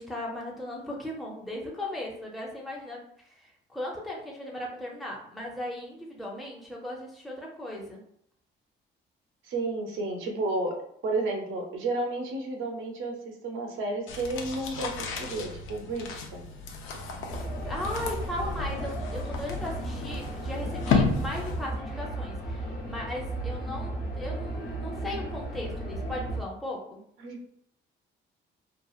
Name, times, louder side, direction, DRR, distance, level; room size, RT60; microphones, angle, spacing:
voice 1, 0.0-8.0 17.7-27.0, left 1 dB, ahead, -2 dB, 0.6 m, -37 dB
voice 2, 9.4-10.8 11.0-16.5 27.2-27.5, right 2 dB, 85° right, 2 dB, 0.7 m, -32 dB
sound 1, 14.1-21.8, left 4 dB, 85° left, 0.5 m, -33 dB
sound 2, 17.3-26.4, right 1 dB, 45° left, 0.9 m, -34 dB
2.9 x 2.3 x 2.4 m, 0.68 s
cardioid pair, 90°, 20 cm